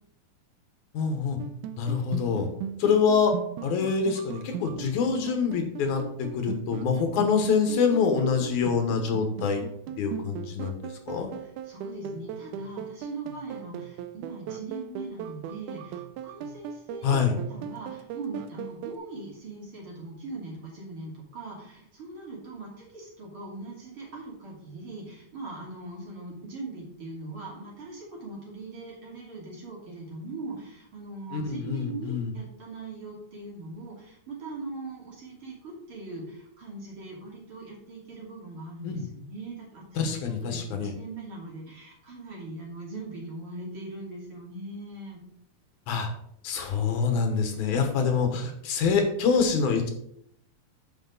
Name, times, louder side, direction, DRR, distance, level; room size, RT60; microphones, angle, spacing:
voice 1, 0.9-1.4 1.8-2.5 2.8-3.3 3.6-9.6 10.0-10.8 11.1-11.3 17.0-17.3 31.3-32.3 38.8-39.0 40.0-40.9 45.9-46.1 46.4-49.9, left 5 dB, 75° left, 5 dB, 2.6 m, -25 dB
sound 1, 1.4-19.0, right 8 dB, 90° right, 2.1 m, -39 dB
voice 2, 11.1-45.2, right 2 dB, 45° right, -3 dB, 3.4 m, -41 dB
9.5 x 6.6 x 3.9 m, 0.71 s
omnidirectional pair, 3.5 m